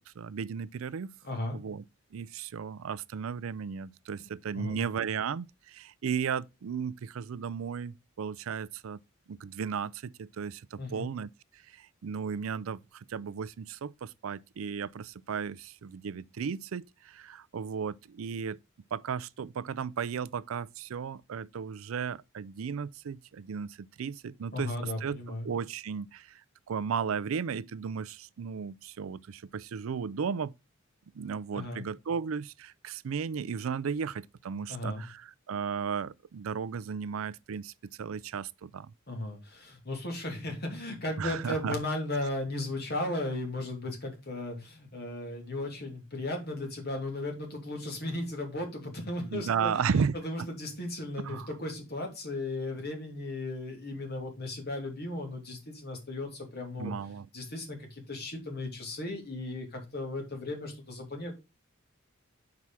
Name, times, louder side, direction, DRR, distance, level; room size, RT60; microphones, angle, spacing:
voice 1, 0.2-1.1 1.5-1.8 2.1-9.0 9.3-11.3 11.7-18.6 18.9-26.4 26.7-30.5 31.1-37.7 38.0-38.9 41.2-41.8 49.2-50.5 51.2-51.5 56.8-57.3, right 6 dB, 85° right, 0.4 m, -35 dB
voice 2, 1.2-1.6 4.5-4.8 10.8-11.1 24.5-25.5 31.5-31.8 34.7-35.0 39.1-56.9 57.3-61.3, left 2 dB, 50° left, 2.8 m, -36 dB
6.0 x 4.8 x 5.5 m
head